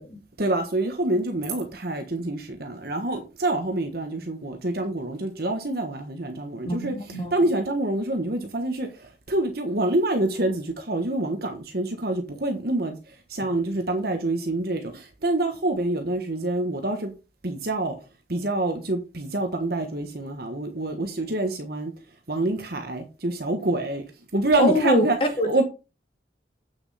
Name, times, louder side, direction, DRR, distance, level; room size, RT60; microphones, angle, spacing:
voice 1, 0.4-6.9 7.3-13.0 13.3-17.1 17.4-17.9 18.3-21.9 22.3-24.0 24.3-25.2 25.4-25.6, right 2 dB, 55° right, 1.3 m, -26 dB
voice 2, 6.7-7.3 24.6-25.1 25.4-25.6, equal, 30° left, 2.1 m, -24 dB
8.7 x 6.6 x 4.2 m
head